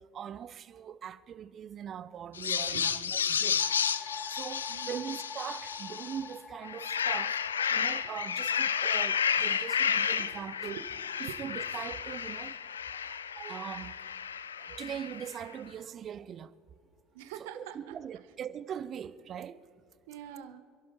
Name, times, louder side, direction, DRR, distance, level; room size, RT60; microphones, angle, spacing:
voice 1, 0.1-3.6 4.3-7.4 7.7-10.8 11.2-12.5 13.1-14.0 14.6-16.5 17.6-19.6, right 9 dB, 40° right, 0.7 m, -41 dB
sound 1, 2.3-6.2 6.6-15.3, left 7 dB, 85° left, 0.4 m, -32 dB
sound 2, 3.6-13.9, left 6 dB, 30° left, 0.7 m, -48 dB
voice 2, 4.7-5.1 10.2-10.4 10.7-10.8 11.3-11.4 17.1-18.0 20.1-20.6, right 10 dB, 65° right, 1.2 m, -45 dB
27.0 x 11.5 x 4.3 m
figure-of-eight pair, 70°, 0 cm